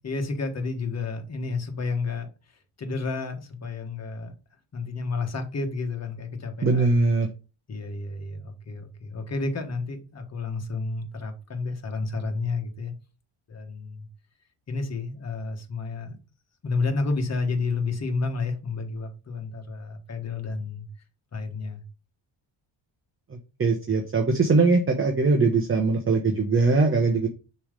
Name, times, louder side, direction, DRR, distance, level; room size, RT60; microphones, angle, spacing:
voice 1, 0.0-2.3 2.8-4.3 4.7-6.9 7.7-12.9 13.5-14.1 14.7-16.2 16.6-20.9 21.3-21.8, left 3 dB, 35° left, 1.4 m, -31 dB
voice 2, 6.6-7.3 23.3-27.3, right 3 dB, 25° right, 0.9 m, -21 dB
7.0 x 3.2 x 5.1 m
cardioid pair, 140°, 47 cm